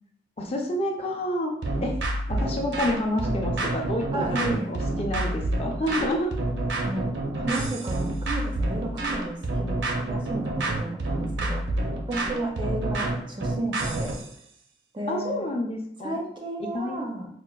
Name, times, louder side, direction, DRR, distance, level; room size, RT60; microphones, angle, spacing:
voice 1, 0.4-1.5 1.8-6.3 15.1-16.3 16.6-17.0, left 1 dB, 35° left, 1 dB, 0.4 m, -29 dB
sound 1, 1.6-14.3, right 2 dB, 80° right, 0.6 m, -28 dB
voice 2, 4.1-4.7 6.8-7.1 7.3-11.8 12.1-14.2 14.9-15.4 16.0-17.3, right 1 dB, 25° right, 1 dB, 0.4 m, -32 dB
4.4 x 2.2 x 2.2 m, 0.70 s
head